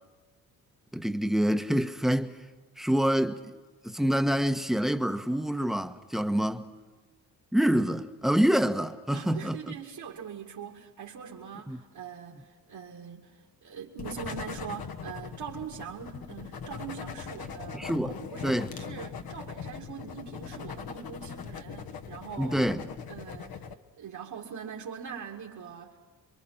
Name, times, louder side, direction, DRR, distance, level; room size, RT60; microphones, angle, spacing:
voice 1, 0.9-2.4 2.8-3.4 3.8-6.6 7.5-9.7 11.7-11.8 17.7-18.2 18.4-18.7 22.4-22.8, equal, ahead, 1.2 m, -26 dB
voice 2, 9.1-22.6 23.1-23.6 24.0-26.0, right 7 dB, 60° right, 2.6 m, -42 dB
sound 1, 14.0-23.7, left 6 dB, 55° left, 1.4 m, -40 dB
27.0 x 23.0 x 6.0 m
hypercardioid pair, 55°, 44 cm